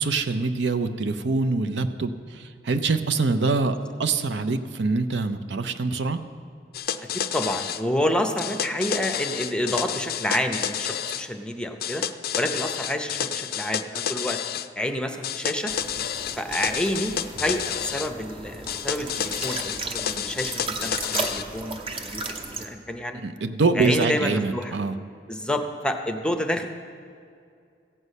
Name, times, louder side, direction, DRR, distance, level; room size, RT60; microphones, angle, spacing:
voice 1, 0.0-6.2 23.1-24.9, right 3 dB, 75° right, 9 dB, 0.6 m, -25 dB
sound 1, 6.7-7.8 8.4-11.2 11.8-14.7 15.2-18.1 18.7-21.4, left 9 dB, 55° left, 0.4 m, -30 dB
voice 2, 7.1-12.0 12.4-14.4 14.8-15.7 16.4-17.1 17.4-22.2 22.5-23.2 23.8-24.8 25.3-26.7, left 1 dB, 5° left, 6 dB, 0.6 m, -28 dB
sound 2, 15.7-22.7, right 3 dB, 30° right, 0.8 m, -35 dB
15.0 x 5.4 x 8.2 m, 2.3 s
head